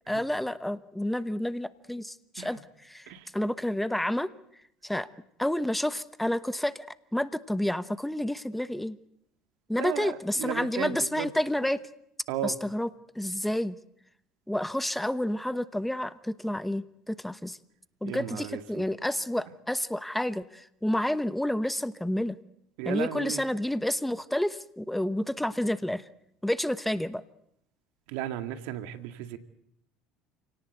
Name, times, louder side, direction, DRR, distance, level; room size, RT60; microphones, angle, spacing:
voice 1, 0.1-4.3 4.8-5.1 5.4-6.9 7.1-9.0 9.7-11.8 12.4-12.9 13.2-13.7 14.5-17.6 18.0-22.4 22.8-26.0 26.4-27.2, left 1 dB, 5° left, 14 dB, 1.0 m, -29 dB
voice 2, 9.8-11.3 12.3-12.6 18.0-18.9 22.8-23.4 28.1-29.4, right 11 dB, 75° right, 8 dB, 2.0 m, -35 dB
29.0 x 18.0 x 8.1 m, 0.80 s
hypercardioid pair, 75°, 2 cm